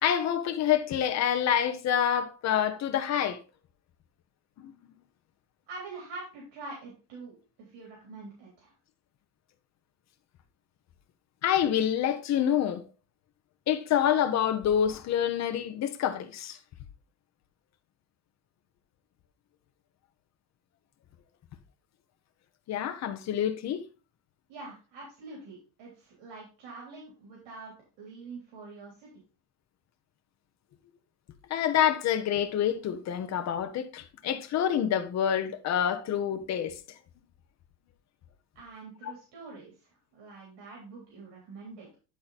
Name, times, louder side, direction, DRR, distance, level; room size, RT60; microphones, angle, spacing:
voice 1, 0.0-3.4 4.6-4.7 11.4-12.9 13.7-16.6 22.7-23.8 31.5-36.8 39.0-39.1, left 9 dB, 40° left, 0.9 m, -27 dB
voice 2, 5.7-7.3 7.6-8.7 24.5-29.1 38.6-41.9, right 3 dB, 85° right, 3.5 m, -45 dB
10.5 x 3.8 x 4.1 m
cardioid pair, 165°, 40 cm